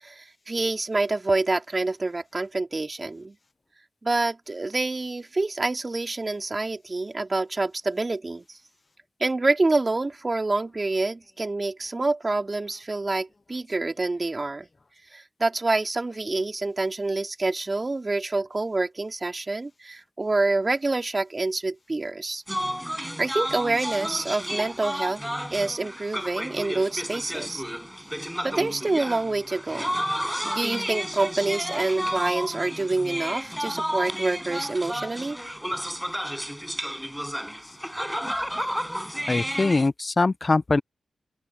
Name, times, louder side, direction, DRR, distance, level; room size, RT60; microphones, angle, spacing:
voice 1, 0.0-3.4 4.0-8.6 9.2-14.7 15.1-22.4 23.2-25.2 25.5-27.6 28.4-30.0 30.4-35.4, right 2 dB, 35° right, 3.5 m, -27 dB
sound 1, 22.5-39.9, equal, ahead, 6.3 m, -31 dB
voice 2, 39.3-40.8, left 3 dB, 40° left, 0.5 m, -22 dB
open air
cardioid pair, 50°, 0 cm